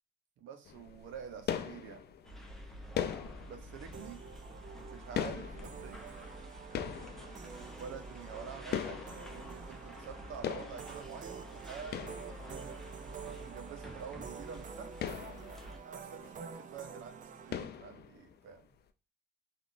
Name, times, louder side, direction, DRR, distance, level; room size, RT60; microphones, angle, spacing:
voice 1, 0.4-2.0 3.5-4.2 4.8-6.1 7.8-9.0 9.3-12.6 13.2-14.9 15.8-18.7, right 7 dB, 80° right, 6 dB, 0.7 m, -48 dB
sound 1, 0.7-10.2 10.4-12.9 13.4-13.5 13.8-13.9 14.1-14.3 14.7-16.5 16.8-17.1 17.5-18.5, left 9 dB, 55° left, 0.4 m, -41 dB
sound 2, 2.2-15.8, equal, ahead, 0.7 m, -49 dB
sound 3, 3.9-17.6, right 7 dB, 40° right, 0.4 m, -48 dB
3.6 x 2.4 x 2.5 m, 0.35 s
cardioid pair, 90°, 20 cm